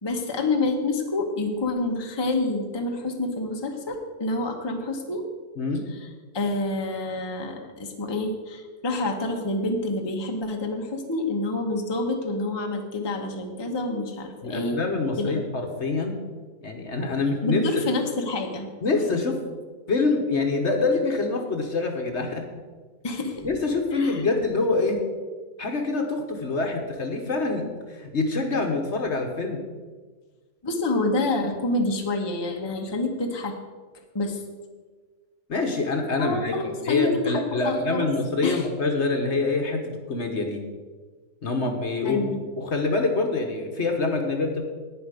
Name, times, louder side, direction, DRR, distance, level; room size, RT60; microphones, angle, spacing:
voice 1, 0.0-5.2 5.9-6.1 6.3-14.8 15.2-15.5 17.4-18.7 23.0-23.5 23.9-24.3 30.6-33.5 34.1-34.4 36.2-38.1 38.4-38.7 42.0-42.4, left 2 dB, 20° left, 2 dB, 1.0 m, -27 dB
voice 2, 14.4-16.2 16.6-17.6 18.8-19.4 19.9-22.4 23.4-25.0 25.6-29.6 35.5-36.5 36.8-39.8 40.1-40.6 41.4-42.3 42.6-44.6, left 3 dB, 50° left, 4 dB, 1.3 m, -25 dB
10.5 x 9.3 x 5.0 m, 1.4 s
omnidirectional pair, 1.6 m